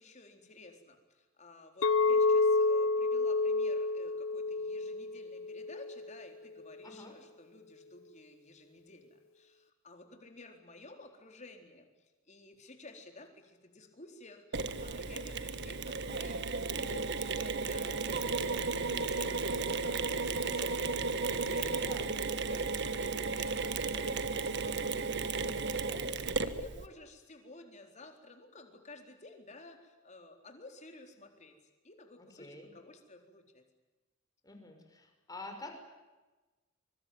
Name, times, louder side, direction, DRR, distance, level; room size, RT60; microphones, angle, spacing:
voice 1, 0.0-20.9 21.5-21.9 22.3-31.5 31.8-33.6, left 2 dB, 35° left, 4 dB, 4.2 m, -53 dB
Chink clink, 1.8-6.1, left 3 dB, 70° left, 0.9 m, -29 dB
voice 2, 6.8-7.1 18.3-19.0 21.6-22.1 32.2-32.7 34.4-35.7, left 2 dB, 20° left, 4 dB, 5.9 m, -49 dB
Mechanisms, 14.5-26.9, right 4 dB, 55° right, 1.5 m, -34 dB
24.5 x 23.5 x 9.5 m, 1.2 s
head